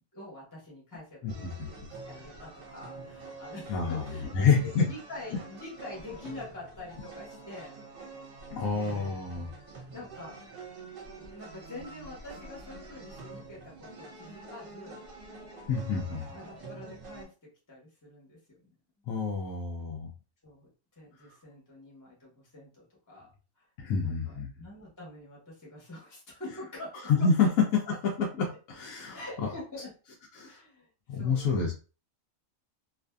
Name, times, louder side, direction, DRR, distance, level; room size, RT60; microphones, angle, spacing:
voice 1, 0.1-4.3 4.6-7.8 8.7-9.1 9.9-10.4 11.1-15.0 15.9-17.3 17.7-18.7 19.1-19.5 20.4-20.7 21.0-23.3 23.6-23.7 24.0-27.0 27.4-27.5 27.9-28.0 29.1-29.9 30.4-31.6, left 2 dB, 15° left, -4 dB, 0.9 m, -46 dB
voice 2, 1.2-1.7 3.7-4.0 4.3-4.8 8.5-9.5 15.7-16.2 19.1-20.1 21.2-21.3 23.8-24.5 27.0-29.5 30.4-30.6 31.1-31.7, left 5 dB, 90° left, -1 dB, 1.1 m, -28 dB
sound 1, 1.3-17.2, right 3 dB, 45° right, 0.9 m, -47 dB
2.7 x 2.5 x 2.2 m, 0.34 s
omnidirectional pair, 1.4 m